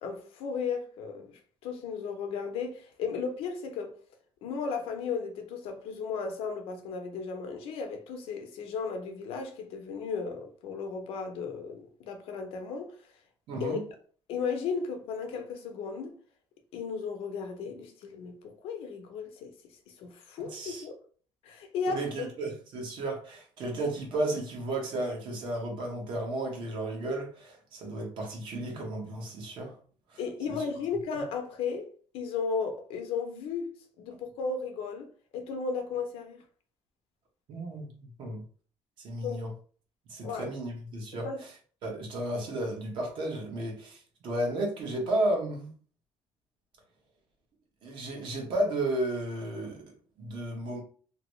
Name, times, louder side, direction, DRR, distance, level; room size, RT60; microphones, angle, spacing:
voice 1, 0.0-3.9 4.4-13.0 13.6-13.9 14.3-16.2 16.7-19.5 20.0-21.0 21.4-22.3 30.2-31.9 32.1-35.1 35.3-36.4 39.2-39.4 40.2-40.5 41.2-41.4, left 5 dB, 80° left, 0.7 m, -35 dB
voice 2, 13.5-13.8 20.4-20.8 21.9-29.8 30.1-30.2 30.5-30.6 37.5-38.4 39.0-39.5 40.1-41.5 41.8-45.7 47.8-50.8, right 1 dB, 60° right, 1.1 m, -33 dB
2.9 x 2.6 x 3.1 m
cardioid pair, 165°, 10 cm